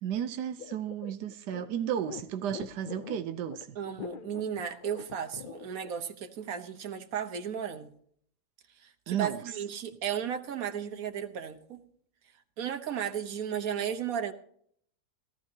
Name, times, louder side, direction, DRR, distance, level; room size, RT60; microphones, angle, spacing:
voice 1, 0.0-3.8 9.1-9.4, right 9 dB, 90° right, 1.3 m, -33 dB
sound 1, 0.6-5.9, left 6 dB, 50° left, 0.6 m, -44 dB
voice 2, 3.7-7.9 8.8-11.8 12.6-14.3, right 8 dB, 60° right, 1.5 m, -34 dB
18.0 x 13.5 x 2.8 m
omnidirectional pair, 1.7 m